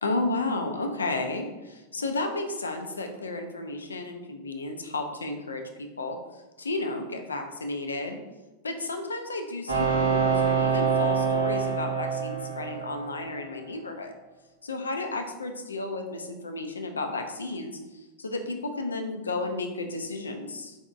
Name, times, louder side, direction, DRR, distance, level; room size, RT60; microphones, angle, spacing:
voice 1, 0.0-5.6 6.0-6.2 6.6-8.2 8.6-14.1 14.6-17.8 18.2-20.8, left 2 dB, 75° left, 5 dB, 0.4 m, -32 dB
sound 1, 9.7-13.4, right 6 dB, 80° right, 0.9 m, -26 dB
4.0 x 3.4 x 2.4 m, 1.1 s
figure-of-eight pair, 90°, 0 cm